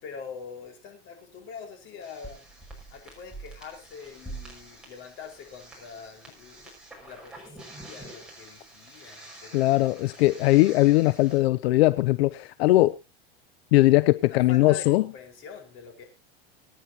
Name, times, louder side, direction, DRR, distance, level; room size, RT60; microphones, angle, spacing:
voice 1, 0.0-2.5 2.9-6.7 7.0-9.7 14.3-16.0, left 6 dB, 40° left, 4.9 m, -44 dB
sound 1, 2.0-11.4, right 2 dB, 5° right, 5.6 m, -46 dB
voice 2, 9.5-13.0 13.7-15.0, left 18 dB, 80° left, 0.6 m, -20 dB
24.0 x 9.6 x 2.9 m
supercardioid pair, 145°, 30 cm